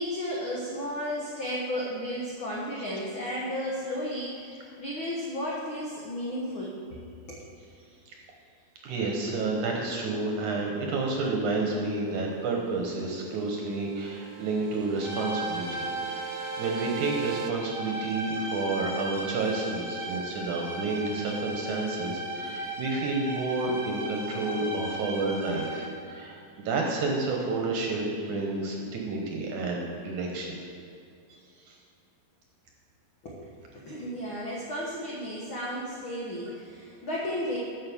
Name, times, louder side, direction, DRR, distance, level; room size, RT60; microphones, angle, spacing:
voice 1, 0.0-7.0 7.3-7.4 33.2-37.6, equal, 70° left, -5 dB, 1.1 m, -34 dB
voice 2, 8.8-30.6 31.3-31.4 31.7-31.8, right 3 dB, 65° right, 0 dB, 2.2 m, -30 dB
sound 1, 12.6-17.5, right 9 dB, 80° right, 2.4 m, -41 dB
sound 2, 15.0-26.1, right 1 dB, 15° right, 1.0 m, -36 dB
9.6 x 6.6 x 7.2 m, 2.5 s
omnidirectional pair, 4.4 m